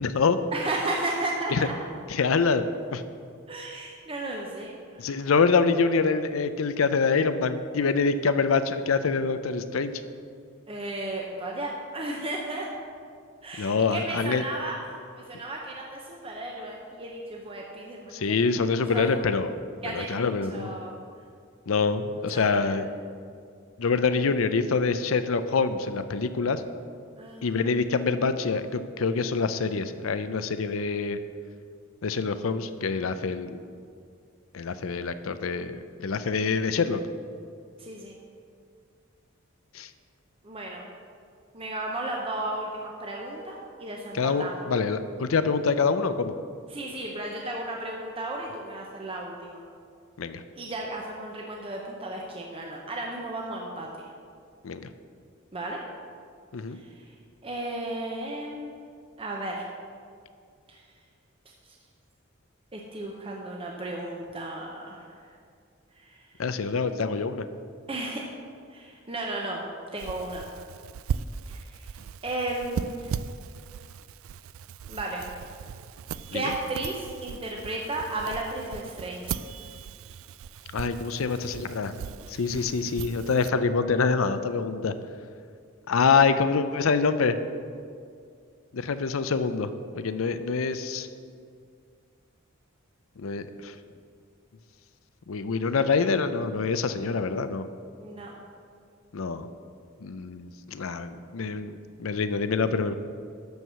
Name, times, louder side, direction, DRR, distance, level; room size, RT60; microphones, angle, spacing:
voice 1, 0.0-0.4 1.5-1.7 2.1-2.6 2.9-3.0 5.0-9.9 13.6-14.4 18.1-19.5 19.8-20.8 21.7-22.8 23.8-26.6 27.4-31.2 32.0-33.6 34.5-37.0 39.7-39.9 44.1-46.3 50.2-50.4 54.6-54.9 56.5-56.8 66.4-67.4 76.3-76.4 80.7-81.9 82.3-84.9 85.9-87.4 88.7-89.7 90.0-91.1 93.2-93.7 95.3-97.7 99.1-99.5 100.0-102.9, left 4 dB, 80° left, 11 dB, 0.5 m, -25 dB
voice 2, 0.5-1.7 3.5-5.1 10.7-12.7 13.4-14.8 15.1-19.2 19.8-21.0 22.3-22.8 27.2-27.6 37.8-38.2 40.4-40.9 41.5-44.7 46.7-49.6 50.5-54.1 55.5-55.8 56.7-57.1 57.4-58.7 59.2-59.7 60.7-60.8 61.7-61.8 62.7-65.3 65.9-66.4 67.9-68.2 68.7-69.6 69.9-70.5 71.5-72.0 72.2-73.2 74.9-75.3 76.3-79.4 82.5-82.9 98.0-98.3, right 2 dB, 25° right, -1 dB, 0.8 m, -34 dB
sound 1, 70.0-83.5, right 7 dB, 80° right, 0.3 m, -38 dB
12.0 x 4.7 x 6.8 m, 2.3 s
head